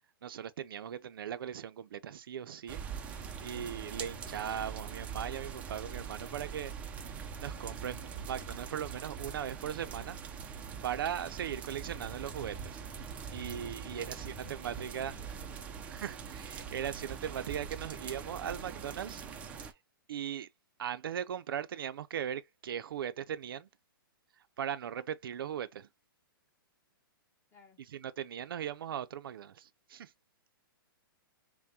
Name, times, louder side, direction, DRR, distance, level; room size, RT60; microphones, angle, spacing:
voice 1, 0.2-2.8 3.4-6.7 7.1-10.2 10.8-12.8 13.3-15.1 15.9-19.2 20.1-20.5 20.8-23.7 24.6-25.9 27.9-30.1, right 9 dB, 75° right, 0.4 m, -39 dB
sound 1, 2.7-19.7, right 6 dB, 10° right, 0.4 m, -43 dB
voice 2, 13.7-15.7 27.5-27.8, left 4 dB, 15° left, 1.0 m, -60 dB
5.8 x 2.1 x 2.7 m
hypercardioid pair, 155°, 12 cm